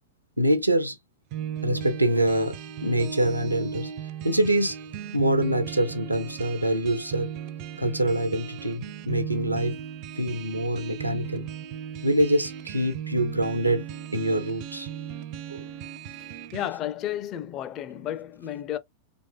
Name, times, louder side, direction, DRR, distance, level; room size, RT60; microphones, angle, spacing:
voice 1, 0.4-1.0 1.6-3.9 4.2-4.8 5.1-7.3 7.8-9.8 10.2-11.5 12.0-13.8 14.1-14.9 15.5-15.6, right 1 dB, 85° right, 0.7 m, -25 dB
sound 1, 1.3-16.7, right 9 dB, 40° right, 0.5 m, -37 dB
voice 2, 16.5-18.8, left 12 dB, 35° left, 0.5 m, -32 dB
3.5 x 3.1 x 2.4 m
figure-of-eight pair, 90°, 0 cm